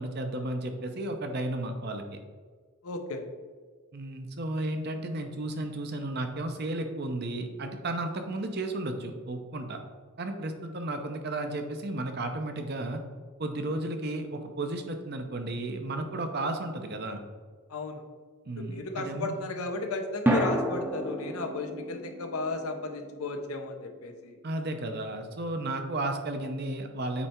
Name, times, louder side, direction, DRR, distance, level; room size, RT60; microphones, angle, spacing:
voice 1, 0.0-2.0 3.9-9.8 10.2-13.0 13.4-17.2 18.5-19.3 24.4-27.3, right 2 dB, 45° right, 6 dB, 0.7 m, -33 dB
voice 2, 2.8-3.2 17.7-18.0 18.6-24.4, left 3 dB, 80° left, 5 dB, 0.8 m, -34 dB
sound 1, 20.3-24.6, right 1 dB, 10° right, 0.7 m, -32 dB
8.3 x 3.3 x 4.4 m, 1.5 s
head